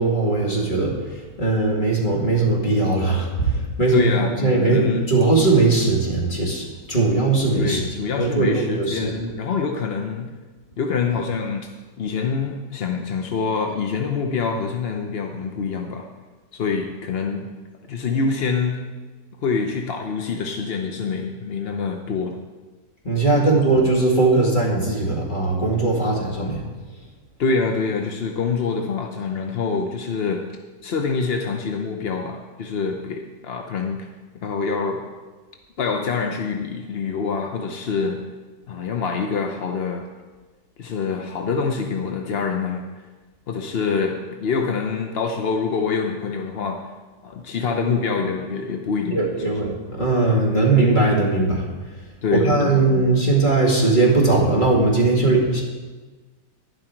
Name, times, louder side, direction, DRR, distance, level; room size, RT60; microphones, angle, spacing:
voice 1, 0.0-7.8 8.2-9.2 23.0-26.6 49.1-51.6 52.3-55.6, right 3 dB, 25° left, -2 dB, 2.3 m, -19 dB
voice 2, 3.9-5.0 7.5-10.3 10.8-11.7 12.0-16.1 16.5-17.5 17.9-18.8 19.4-22.4 23.5-23.6 27.4-30.4 30.8-34.1 34.3-35.0 35.8-38.2 38.7-40.0 40.8-43.0 43.5-46.8 47.2-49.6 52.2-52.8, left 5 dB, 55° left, 3 dB, 0.7 m, -25 dB
11.5 x 11.0 x 4.5 m, 1.3 s
omnidirectional pair, 1.9 m